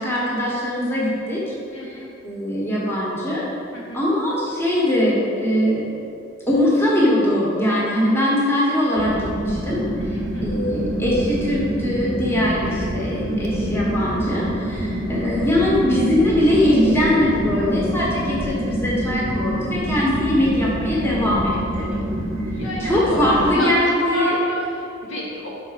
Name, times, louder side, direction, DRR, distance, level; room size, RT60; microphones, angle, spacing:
voice 1, 0.0-1.4 1.7-3.4 3.9-5.2 5.4-5.9 6.5-9.8 10.4-21.9 22.8-24.4, left 1 dB, 15° left, -6 dB, 1.2 m, -21 dB
voice 2, 1.7-2.1 3.7-4.0 10.1-10.6 14.7-15.0 21.8-22.0 22.5-25.5, equal, 75° left, -5 dB, 1.4 m, -30 dB
sound 1, 9.0-23.5, right 1 dB, 80° right, 0.6 m, -26 dB
4.9 x 4.1 x 5.7 m, 2.6 s
head